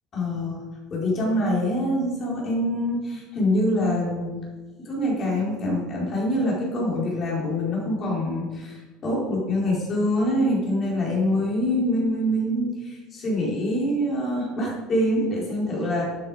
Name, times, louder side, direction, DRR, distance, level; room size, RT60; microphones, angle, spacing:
voice 1, 0.1-0.6 0.9-4.4 4.8-16.0, left 1 dB, 30° left, -4 dB, 4.8 m, -25 dB
13.0 x 9.9 x 5.3 m, 1.3 s
cardioid pair, 165°, 0 cm